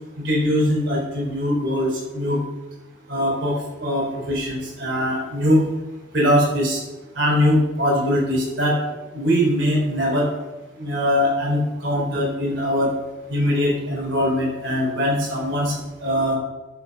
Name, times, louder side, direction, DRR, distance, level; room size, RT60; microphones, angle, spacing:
voice 1, 0.2-2.4 3.1-5.6 6.1-6.8 7.1-8.8 9.1-10.3 10.8-12.9 13.3-15.7 16.0-16.3, equal, 65° right, -4 dB, 4.1 m, -21 dB
10.5 x 6.0 x 6.1 m, 1.1 s
head